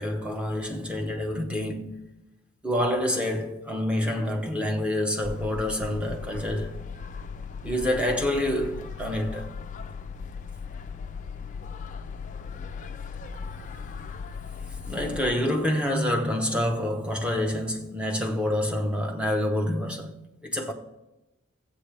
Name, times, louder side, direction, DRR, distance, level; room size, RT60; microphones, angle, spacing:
voice 1, 0.0-2.0 2.6-6.8 7.6-9.5 14.9-20.7, left 1 dB, 5° right, 0.9 m, -27 dB
sound 1, 5.2-15.3, left 5 dB, 35° left, 0.4 m, -38 dB
14.0 x 8.2 x 3.3 m
head